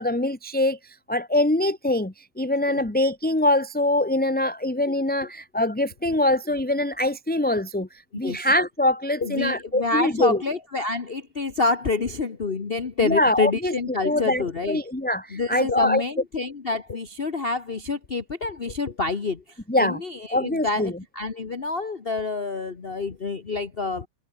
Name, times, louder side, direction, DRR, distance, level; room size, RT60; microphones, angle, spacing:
voice 1, 0.0-10.4 13.0-13.7 14.0-16.0 19.7-20.0 20.3-20.9, left 1 dB, 5° left, 1.3 m, -23 dB
voice 2, 9.2-14.8 15.3-19.4 19.8-24.1, left 3 dB, 30° left, 1.4 m, -27 dB
omnidirectional pair, 2.2 m